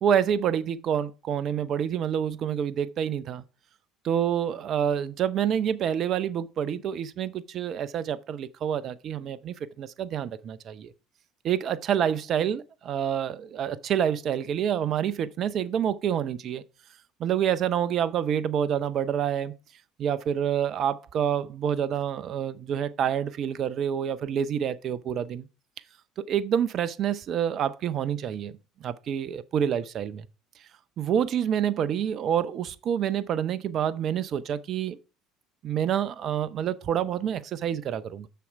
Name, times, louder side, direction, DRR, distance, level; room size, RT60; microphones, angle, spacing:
voice 1, 0.0-3.4 4.0-10.9 11.4-16.6 17.2-19.5 20.0-25.5 26.3-28.5 28.8-30.2 31.0-35.0 35.6-38.3, right 9 dB, 50° right, 0.7 m, -27 dB
6.8 x 6.4 x 4.6 m
hypercardioid pair, 70°, 0 cm